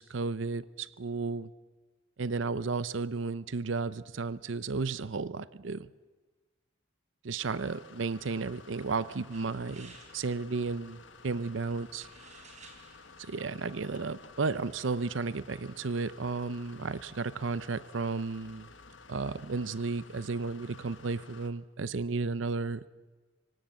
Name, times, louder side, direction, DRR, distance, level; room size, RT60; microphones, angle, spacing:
voice 1, 0.0-1.5 2.2-5.9 7.2-12.1 13.2-18.7 19.1-22.9, right 4 dB, 75° right, 17 dB, 0.7 m, -33 dB
sound 1, 7.4-21.5, left 4 dB, 70° left, 1.8 m, -53 dB
sound 2, 9.3-14.7, right 3 dB, 40° right, 4.2 m, -58 dB
25.0 x 18.0 x 8.2 m, 1.3 s
head